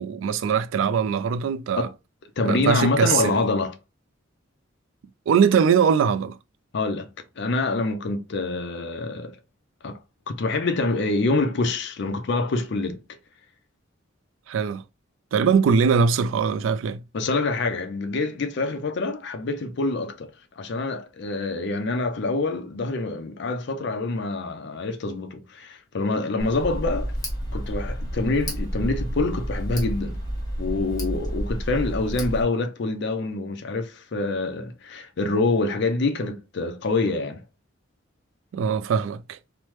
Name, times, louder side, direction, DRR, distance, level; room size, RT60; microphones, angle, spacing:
voice 1, 0.0-1.9 2.4-3.4 5.3-6.4 14.5-14.8 15.3-17.0 38.5-39.4, right 6 dB, 75° right, 0.3 m, -21 dB
voice 2, 2.4-3.8 6.7-7.1 7.4-9.4 9.8-10.0 10.3-13.0 17.1-27.2 27.5-30.2 30.6-37.4, left 3 dB, 60° left, 0.5 m, -26 dB
Tick, 26.4-32.4, equal, 20° left, 1.1 m, -30 dB
3.1 x 2.1 x 3.0 m
head